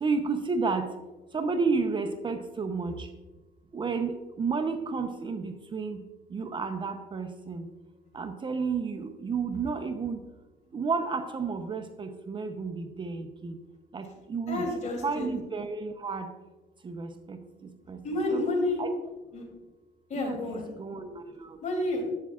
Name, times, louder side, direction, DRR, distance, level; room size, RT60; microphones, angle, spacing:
voice 1, 0.0-0.9 1.3-3.1 3.7-6.0 6.3-7.7 8.1-10.2 10.7-13.6 13.9-14.6 15.0-16.3 16.8-17.4 17.9-18.0 18.3-18.5 18.8-18.9 20.1-21.6, right 4 dB, 30° right, 7 dB, 0.7 m, -31 dB
voice 2, 14.5-15.3 18.0-18.8 19.3-19.4 20.1-20.7 21.6-22.0, left 2 dB, 45° left, 2 dB, 2.8 m, -30 dB
12.0 x 8.3 x 2.4 m, 1.2 s
cardioid pair, 110°, 17 cm